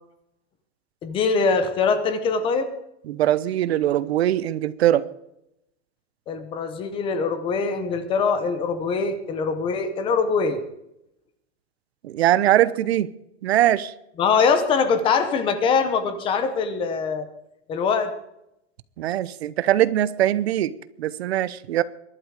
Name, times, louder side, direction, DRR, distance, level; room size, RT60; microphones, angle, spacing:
voice 1, 1.0-2.7 6.3-10.6 14.2-17.3 17.7-18.1, left 5 dB, 15° left, 10 dB, 1.0 m, -23 dB
voice 2, 3.1-5.1 12.0-13.1 13.4-13.9 19.0-21.8, right 12 dB, 60° right, 17 dB, 1.0 m, -21 dB
22.5 x 11.5 x 4.9 m, 0.83 s
supercardioid pair, 175°, 35 cm